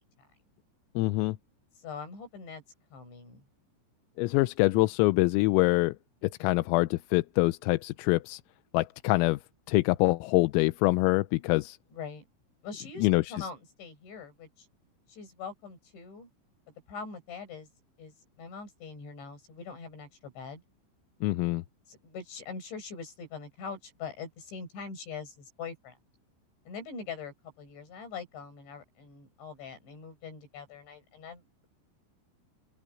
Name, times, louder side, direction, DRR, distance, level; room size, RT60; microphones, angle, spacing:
voice 1, 1.0-1.4 4.2-6.0 6.2-8.4 8.7-9.4 9.7-11.8 13.0-13.3 21.2-21.6, left 22 dB, 85° left, 3.4 m, -25 dB
voice 2, 1.8-2.6 2.9-3.4 11.9-12.3 12.6-14.7 15.1-16.3 16.9-17.7 18.0-20.6 21.9-26.0 26.7-31.7, left 5 dB, 60° left, 9.6 m, -43 dB
open air
omnidirectional pair, 5.9 m